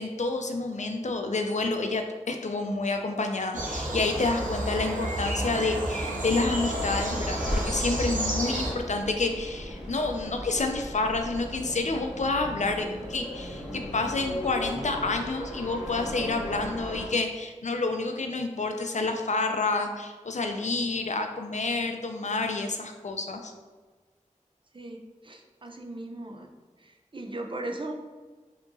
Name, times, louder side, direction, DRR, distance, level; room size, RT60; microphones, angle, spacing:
voice 1, 0.0-23.5, left 3 dB, 65° left, 5 dB, 0.4 m, -29 dB
sound 1, 3.5-8.7, right 1 dB, 75° right, 0.7 m, -30 dB
sound 2, 6.5-17.1, left 1 dB, 5° right, 0.9 m, -37 dB
voice 2, 24.7-26.5 26.8-28.1, right 1 dB, 40° right, 2 dB, 0.5 m, -38 dB
4.4 x 2.9 x 2.6 m, 1.4 s
wide cardioid pair, 50°, 13 cm